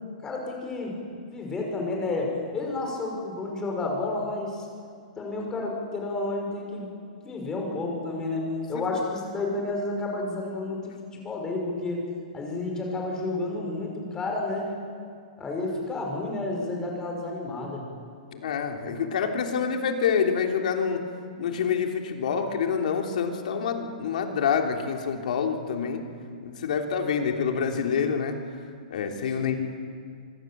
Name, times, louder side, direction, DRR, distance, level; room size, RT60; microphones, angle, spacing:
voice 1, 0.2-1.0 1.3-4.7 5.2-6.9 7.2-12.0 12.3-14.7 15.4-17.8 29.4-29.6, left 2 dB, 15° left, 0 dB, 5.6 m, -31 dB
voice 2, 18.3-21.1 21.4-26.0 26.4-28.4 28.9-29.6, left 6 dB, 65° left, 4 dB, 3.3 m, -27 dB
25.0 x 23.5 x 7.7 m, 2.3 s
hypercardioid pair, 160°, 5 cm